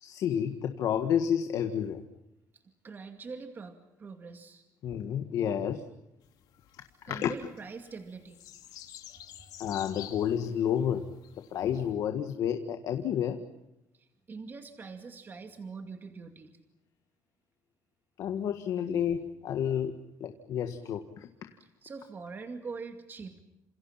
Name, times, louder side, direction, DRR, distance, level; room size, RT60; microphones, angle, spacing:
voice 1, 0.0-2.0 4.8-5.8 7.1-7.3 9.6-11.1 11.5-13.4 18.2-21.3, left 9 dB, 65° left, 6 dB, 1.8 m, -30 dB
voice 2, 2.8-4.6 7.1-8.4 13.9-16.5 21.6-23.4, right 4 dB, 30° right, 5 dB, 2.3 m, -43 dB
sound 1, 6.2-11.9, left 12 dB, 80° left, 3.2 m, -50 dB
28.5 x 27.5 x 5.9 m, 0.91 s
cardioid pair, 140°, 7 cm